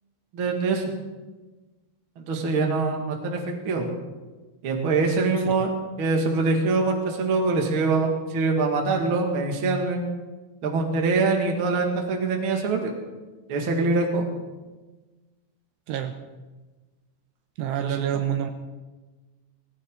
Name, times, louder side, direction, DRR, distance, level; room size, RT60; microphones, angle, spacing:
voice 1, 0.3-0.8 2.2-3.9 4.6-5.7 6.0-10.0 10.6-12.9 13.5-14.3 17.7-18.2, right 3 dB, 40° right, 2 dB, 1.9 m, -24 dB
voice 2, 17.6-18.5, right 10 dB, 80° right, 7 dB, 2.8 m, -27 dB
19.0 x 16.5 x 3.9 m, 1.2 s
omnidirectional pair, 5.2 m